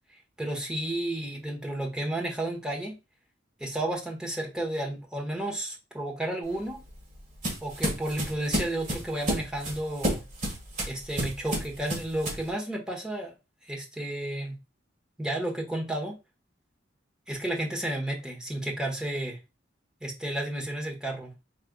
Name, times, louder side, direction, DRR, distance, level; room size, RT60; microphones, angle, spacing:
voice 1, 0.1-3.0 3.6-6.8 7.6-10.2 10.8-13.3 13.6-14.6 15.2-16.2 17.3-19.4 20.0-21.3, right 1 dB, 5° right, 1.1 m, -32 dB
sound 1, 6.5-12.5, right 1 dB, 40° right, 1.8 m, -32 dB
4.9 x 3.3 x 2.3 m
head